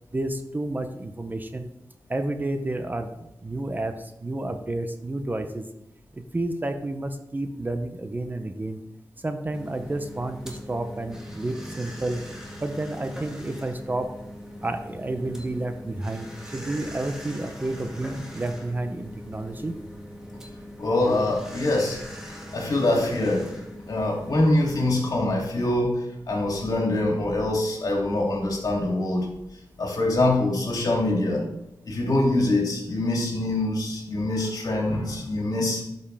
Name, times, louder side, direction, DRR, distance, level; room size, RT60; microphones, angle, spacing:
voice 1, 0.1-1.7 2.1-3.1 3.4-5.7 6.1-8.8 9.2-12.2 12.6-14.1 14.6-19.7, right 2 dB, 25° right, 7 dB, 0.7 m, -30 dB
sound 1, 9.5-25.1, equal, 10° right, 2.0 m, -41 dB
voice 2, 20.8-22.0 22.5-23.5 23.9-29.3 29.8-31.4 31.9-35.8, left 2 dB, 60° left, -2 dB, 2.7 m, -24 dB
12.0 x 5.3 x 3.4 m, 0.90 s
wide cardioid pair, 90°, 7 cm